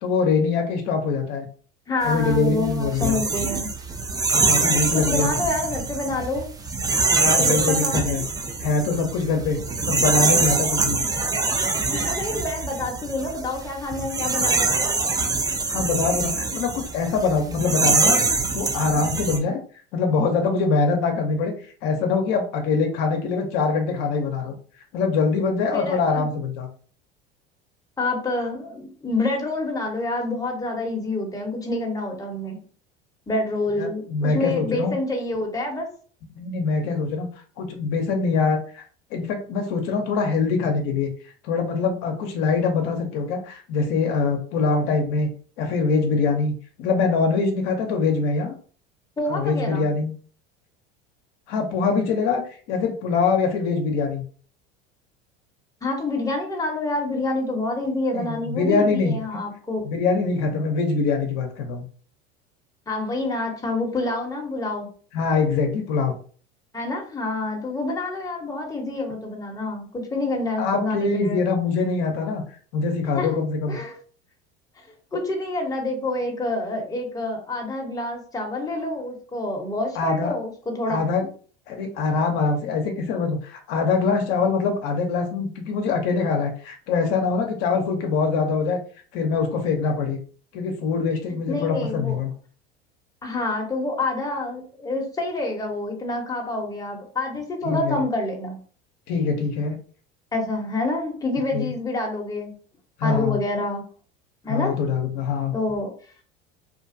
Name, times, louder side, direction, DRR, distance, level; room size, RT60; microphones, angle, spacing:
voice 1, 0.0-1.5 2.0-3.2 4.3-5.3 6.9-8.2 8.6-9.6 9.8-11.0 15.7-18.2 18.5-19.6 19.9-21.5 21.8-24.5 24.9-26.7 33.8-34.9 36.3-37.3 37.6-38.8 39.1-41.1 41.4-45.3 45.6-48.5 49.2-50.1 51.5-54.2 58.1-59.2 59.8-61.8 65.1-66.2 70.6-72.4 72.7-73.8 79.9-80.3 80.9-81.3 81.7-88.8 89.1-90.2 90.5-92.3 97.6-98.0 99.1-99.8 101.5-101.7 103.0-103.4 104.5-105.5, left 4 dB, 60° left, 3 dB, 0.6 m, -23 dB
voice 2, 1.9-3.7 4.9-6.5 7.4-8.0 11.9-14.8 25.7-26.3 28.0-32.6 33.3-35.9 49.2-49.9 55.8-59.9 62.9-64.9 66.7-71.4 73.2-73.3 73.7-74.0 75.1-81.0 91.5-92.2 93.2-98.6 100.3-102.5 103.0-103.8 104.4-104.8 105.5-105.9, left 2 dB, 10° left, 1 dB, 0.8 m, -27 dB
sound 1, 2.1-19.4, right 3 dB, 15° right, 0.3 m, -24 dB
2.5 x 2.2 x 2.6 m, 0.43 s
hypercardioid pair, 85°, 30 cm